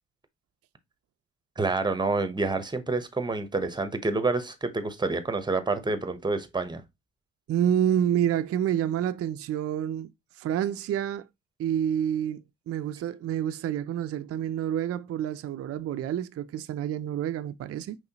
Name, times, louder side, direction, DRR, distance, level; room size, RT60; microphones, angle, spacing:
voice 1, 1.6-6.8, right 3 dB, 15° right, 0.8 m, -28 dB
voice 2, 7.5-10.1 10.4-11.3 11.6-18.0, right 10 dB, 50° right, 0.4 m, -28 dB
5.5 x 3.1 x 2.8 m
cardioid pair, 90°, 30 cm